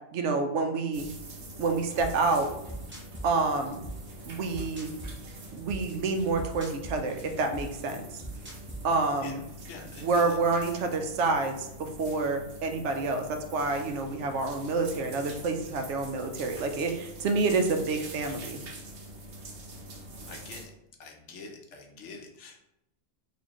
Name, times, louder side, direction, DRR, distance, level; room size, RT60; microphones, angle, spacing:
voice 1, 0.1-1.1 1.6-2.5 3.2-3.8 4.3-4.9 5.5-8.1 8.8-9.4 10.0-18.6, right 3 dB, 75° right, 5 dB, 0.9 m, -28 dB
sound 1, 0.9-20.6, right 1 dB, 55° right, 0.9 m, -45 dB
sound 2, 2.0-9.4, right 2 dB, 15° right, 0.4 m, -43 dB
voice 2, 9.7-10.2 20.3-20.7 21.0-22.6, left 4 dB, 70° left, 2 dB, 1.0 m, -45 dB
4.2 x 2.8 x 2.9 m, 0.86 s
omnidirectional pair, 1.3 m